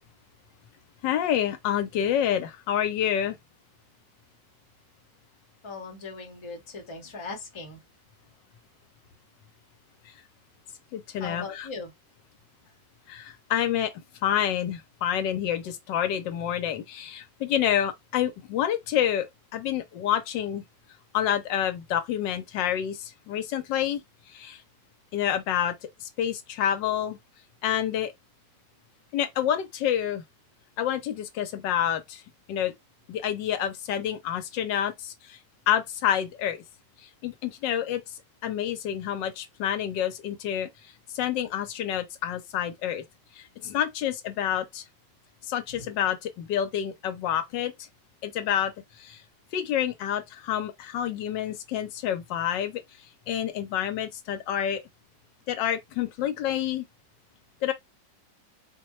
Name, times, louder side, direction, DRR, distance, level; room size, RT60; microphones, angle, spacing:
voice 1, 1.0-3.4 10.1-10.2 10.9-11.7 13.1-19.3 19.5-20.6 21.1-24.0 24.3-24.6 25.1-25.7 26.0-27.2 27.6-28.1 29.1-30.2 30.8-32.2 32.5-32.7 33.1-35.4 35.7-36.6 37.0-43.0 43.3-44.8 45.4-47.7 48.2-49.2 49.5-52.8 53.3-54.8 55.5-56.8 57.6-57.7, left 10 dB, 80° left, 1.3 m, -28 dB
voice 2, 5.6-7.8 11.2-11.9, left 4 dB, 20° left, 0.8 m, -39 dB
4.2 x 2.2 x 3.0 m
omnidirectional pair, 2.0 m